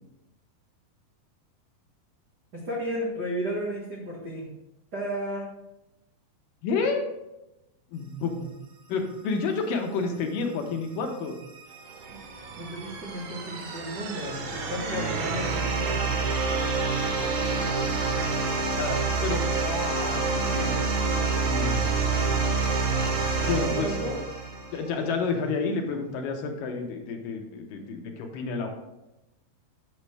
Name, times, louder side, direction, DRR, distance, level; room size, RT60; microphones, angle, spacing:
voice 1, 2.5-4.5 4.9-5.5 12.1-12.2 12.5-16.3 23.6-24.2, equal, 85° right, -5 dB, 0.9 m, -33 dB
voice 2, 6.6-7.0 7.9-8.6 8.9-11.4 18.5-20.7 21.5-22.2 23.5-24.0 24.7-28.7, left 4 dB, 75° left, 3 dB, 2.3 m, -30 dB
sound 1, 11.1-24.9, right 4 dB, 65° right, 1.9 m, -28 dB
8.2 x 6.5 x 3.3 m, 0.92 s
omnidirectional pair, 4.3 m